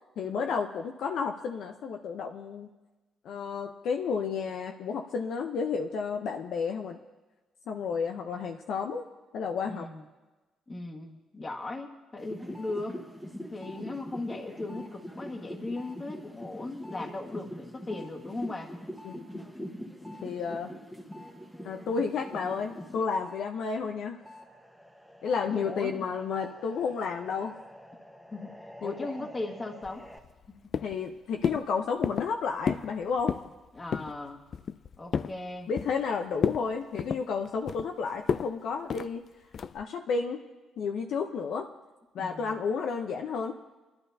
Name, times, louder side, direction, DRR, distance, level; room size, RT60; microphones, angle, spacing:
voice 1, 0.2-2.7 3.2-7.0 7.7-9.1 9.3-9.9 19.0-19.2 20.2-20.7 21.6-24.2 25.2-27.6 28.8-29.1 30.8-33.3 35.7-39.2 39.7-40.4 40.8-41.7 42.1-43.5, left 5 dB, 75° left, 3 dB, 0.7 m, -31 dB
voice 2, 9.7-10.0 10.7-13.0 13.5-18.7 25.5-26.0 28.3-28.5 28.8-30.0 33.7-34.4 35.0-35.7 42.2-42.6, left 2 dB, 25° left, 2 dB, 1.6 m, -38 dB
sound 1, 12.2-23.5 23.8-30.2, equal, 5° left, 1.3 m, -44 dB
sound 2, 29.8-30.5 30.7-31.1 31.4-31.7 32.0-32.3 32.7-32.9 33.2-33.5 33.9-34.1 34.5-35.4 35.8-36.1 36.4-36.6 37.0-37.9 38.3-38.5 38.9-39.1 39.5-39.8, left 7 dB, 55° left, 0.3 m, -31 dB
23.0 x 11.5 x 2.8 m, 1.2 s
cardioid pair, 90°, 0 cm